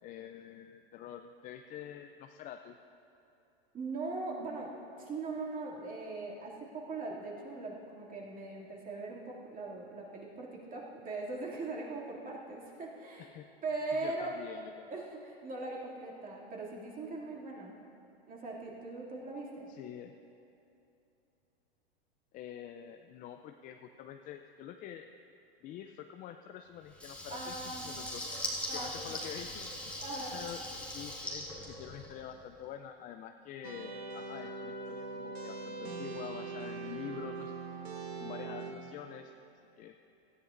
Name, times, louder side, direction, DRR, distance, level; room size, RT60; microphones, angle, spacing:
voice 1, 0.0-2.8 13.2-13.5 14.0-14.9 19.7-20.1 22.3-25.1 25.6-28.3 28.7-29.7 30.3-37.5 38.2-39.3 39.8-39.9, left 10 dB, 25° left, 6 dB, 0.4 m, -46 dB
voice 2, 3.7-4.7 5.0-13.3 13.6-14.3 14.9-17.7 18.3-19.7 27.3-27.9 28.7-29.1 30.0-30.4 38.2-38.5, right 3 dB, 25° right, -3 dB, 2.5 m, -40 dB
Water tap faucet / Liquid, 26.9-32.4, left 1 dB, 5° left, 1.8 m, -41 dB
sound 1, 33.6-38.7, right 4 dB, 80° right, 1.7 m, -41 dB
17.5 x 14.0 x 2.6 m, 2.8 s
hypercardioid pair, 110°, 31 cm